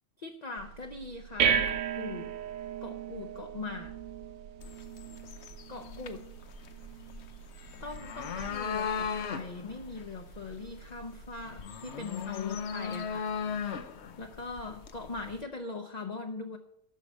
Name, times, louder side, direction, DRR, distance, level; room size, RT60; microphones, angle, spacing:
voice 1, 0.2-2.3 2.8-4.0 5.7-6.3 7.8-13.3 14.2-16.6, left 3 dB, 35° left, 4 dB, 0.8 m, -41 dB
sound 1, 0.6-11.6, right 8 dB, 85° right, 1.2 m, -36 dB
sound 2, 4.6-15.4, left 6 dB, 60° left, 1.0 m, -38 dB
12.5 x 4.8 x 8.4 m, 0.73 s
omnidirectional pair, 1.4 m